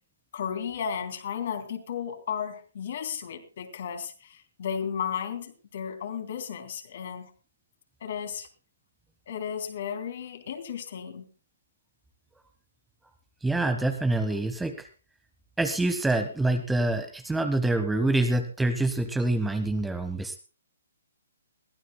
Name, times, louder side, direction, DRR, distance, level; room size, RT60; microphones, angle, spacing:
voice 1, 0.3-7.3 8.0-8.5 9.3-11.3, left 7 dB, 45° left, 6 dB, 3.1 m, -34 dB
voice 2, 13.4-14.9 15.6-20.4, right 2 dB, 5° right, 8 dB, 1.3 m, -26 dB
22.5 x 15.5 x 2.2 m, 0.35 s
figure-of-eight pair, 130°, 0 cm